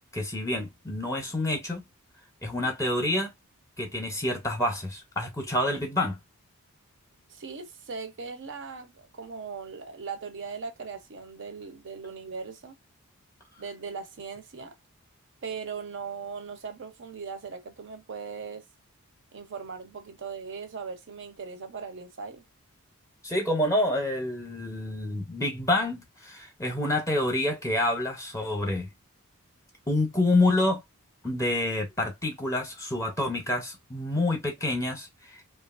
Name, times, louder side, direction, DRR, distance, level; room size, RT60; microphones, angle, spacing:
voice 1, 0.1-1.8 2.4-3.3 3.8-6.2 23.2-28.9 29.9-30.8 31.2-35.4, left 1 dB, 15° left, 0.6 m, -27 dB
voice 2, 7.3-12.8 13.6-14.8 15.4-18.6 19.3-22.4, right 5 dB, 55° right, 0.6 m, -39 dB
2.8 x 2.3 x 2.4 m
head